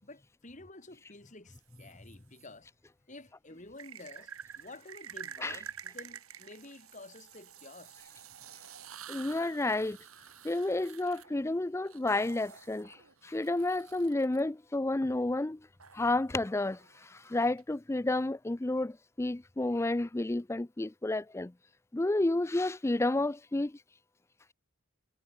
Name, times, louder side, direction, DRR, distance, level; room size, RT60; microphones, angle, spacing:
voice 1, 0.0-2.7 3.1-8.0, left 2 dB, 35° left, 3.2 m, -51 dB
sound 1, 1.5-2.5 3.8-14.4 15.8-17.6, right 7 dB, 80° right, 6.0 m, -49 dB
voice 2, 9.1-10.0 10.4-13.0 13.2-15.6 15.9-21.5 21.9-23.8, left 2 dB, 10° left, 0.4 m, -31 dB
head